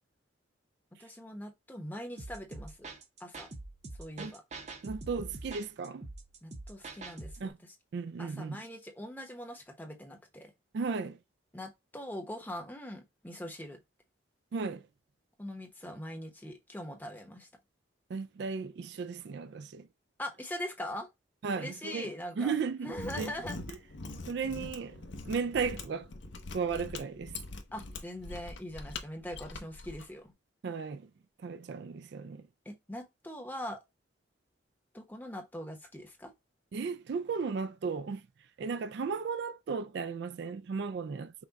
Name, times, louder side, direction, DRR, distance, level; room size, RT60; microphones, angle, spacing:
voice 1, 1.0-2.9 3.2-3.5 4.0-4.4 6.4-7.8 8.2-10.5 11.5-13.8 15.4-17.5 20.2-21.1 21.5-22.5 22.8-23.6 27.7-30.3 32.6-33.8 34.9-36.3, left 1 dB, 10° left, 0.9 m, -42 dB
sound 1, 2.2-7.5, right 3 dB, 35° right, 0.7 m, -45 dB
voice 2, 4.8-6.0 7.4-7.6 7.9-8.6 10.7-11.2 14.5-14.8 18.1-19.9 21.4-22.1 22.4-23.3 24.3-25.0 25.2-26.1 26.5-27.4 30.6-31.1 31.4-32.4 36.7-38.2 38.6-41.5, right 5 dB, 60° right, 0.3 m, -35 dB
Mechanisms, 22.9-30.0, left 3 dB, 75° left, 0.9 m, -43 dB
5.8 x 2.3 x 4.0 m
head